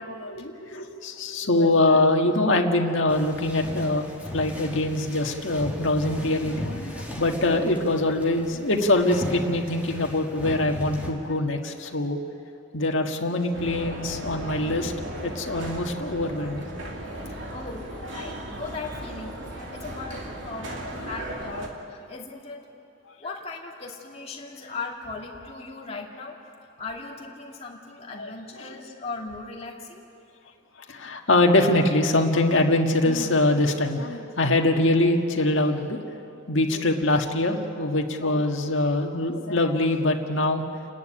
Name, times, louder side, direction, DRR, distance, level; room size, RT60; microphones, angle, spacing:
voice 1, 0.0-4.0 4.3-12.2 12.7-14.9 15.2-16.7 28.2-28.3 28.6-28.7 30.9-36.0 36.5-40.6, left 2 dB, 70° left, 2 dB, 1.7 m, -23 dB
sound 1, 3.1-11.1, equal, 5° right, 2.0 m, -37 dB
sound 2, 13.5-21.7, right 1 dB, 65° right, 2.8 m, -36 dB
voice 2, 17.5-22.6 23.2-26.4 26.8-30.1, left 3 dB, 30° left, -2 dB, 2.3 m, -38 dB
30.0 x 10.5 x 10.0 m, 2.7 s
head